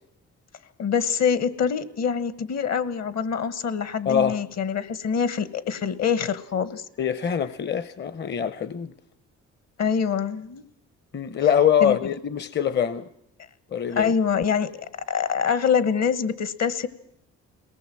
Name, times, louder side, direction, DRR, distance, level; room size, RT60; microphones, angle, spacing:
voice 1, 0.8-6.8 9.8-10.6 11.8-12.0 13.9-16.9, left 7 dB, 60° left, 1.3 m, -25 dB
voice 2, 4.1-4.4 7.0-8.9 11.1-13.1 13.7-14.1, left 8 dB, 35° left, 0.7 m, -24 dB
22.0 x 18.5 x 7.6 m
cardioid pair, 90°, 30 cm